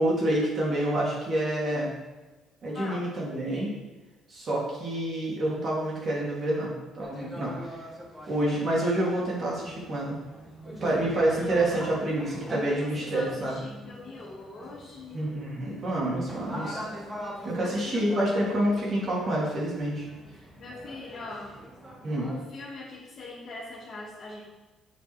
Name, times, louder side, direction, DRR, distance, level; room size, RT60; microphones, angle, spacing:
voice 1, 0.0-1.9 2.6-3.7 4.3-7.8 8.3-10.2 10.8-13.6 15.1-16.8 17.4-20.1 22.0-22.3, right 1 dB, 40° right, -4 dB, 2.9 m, -28 dB
voice 2, 2.7-3.1 11.3-11.9 12.8-15.5 17.4-18.4 20.6-21.5 22.2-24.4, left 3 dB, 45° left, -6 dB, 2.0 m, -42 dB
sound 1, 7.0-22.5, equal, 10° right, 1.5 m, -43 dB
7.3 x 5.8 x 4.8 m, 1.2 s
cardioid pair, 140°, 0 cm